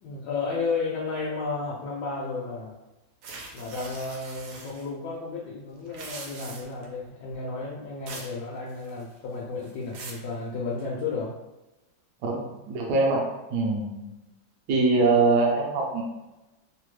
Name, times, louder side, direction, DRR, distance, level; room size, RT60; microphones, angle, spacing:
voice 1, 0.0-2.7 3.5-11.3, left 4 dB, 75° left, -4 dB, 1.1 m, -32 dB
Tearing a piece of paper, 3.2-4.9 5.8-6.9 8.1-8.4 8.7-9.2 9.6-10.3, right 3 dB, 90° right, 1.3 m, -42 dB
voice 2, 12.2-13.2 13.5-14.1 14.7-16.0, right 3 dB, 70° right, -2 dB, 1.2 m, -23 dB
3.3 x 2.1 x 3.1 m, 1.0 s
omnidirectional pair, 2.0 m